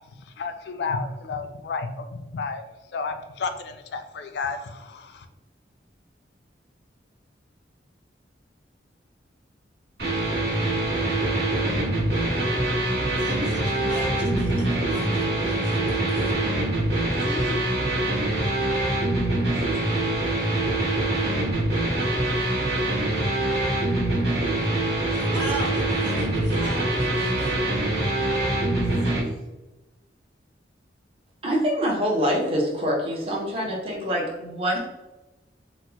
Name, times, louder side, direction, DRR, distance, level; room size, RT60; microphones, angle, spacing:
voice 1, 0.2-2.6 2.9-5.3, left 4 dB, 65° left, 8 dB, 0.3 m, -32 dB
sound 1, 10.0-29.2, right 1 dB, 60° right, 1.1 m, -24 dB
voice 2, 13.2-16.4 17.3-17.6 19.5-20.3 25.1-27.6 28.8-29.2, equal, 80° right, -2 dB, 1.0 m, -36 dB
voice 3, 31.4-34.8, equal, 30° right, -2 dB, 0.7 m, -25 dB
4.1 x 2.0 x 2.8 m, 1.1 s
head